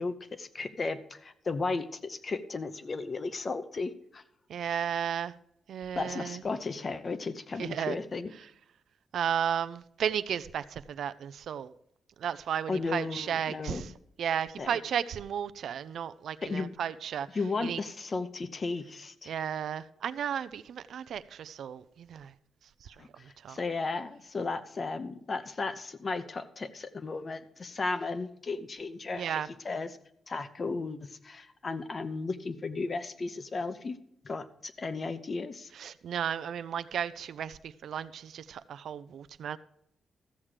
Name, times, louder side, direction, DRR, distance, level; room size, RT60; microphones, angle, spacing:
voice 1, 0.0-4.2 5.9-8.3 12.7-13.9 14.6-14.8 16.4-16.8 17.3-19.3 23.0-30.0 30.3-34.0 34.2-35.7, left 3 dB, 35° left, 0.7 m, -35 dB
voice 2, 4.5-5.3 5.7-6.4 7.6-8.0 9.1-10.6 11.0-11.7 12.2-13.8 14.2-17.3 17.6-17.8 19.3-21.8 22.1-22.3 23.4-23.6 29.2-29.5 35.8-39.6, right 8 dB, 70° right, 0.4 m, -33 dB
13.5 x 7.3 x 4.9 m
cardioid pair, 130°, 0 cm